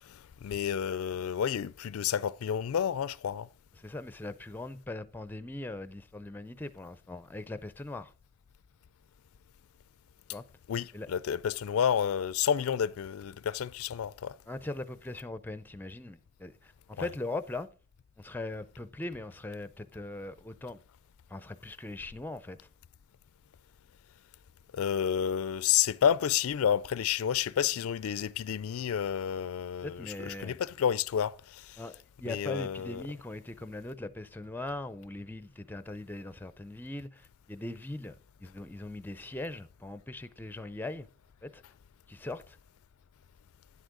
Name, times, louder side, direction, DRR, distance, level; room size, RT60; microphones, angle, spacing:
voice 1, 0.1-3.5 10.7-14.4 17.0-17.1 24.7-31.8 32.2-33.0, left 8 dB, 70° left, 0.4 m, -30 dB
voice 2, 3.8-8.1 10.3-10.4 10.9-11.1 14.5-17.7 18.2-20.8 21.3-22.7 29.8-30.6 31.8-41.1 41.4-41.6 42.1-42.6, left 2 dB, 10° left, 0.4 m, -40 dB
10.0 x 8.1 x 3.8 m
head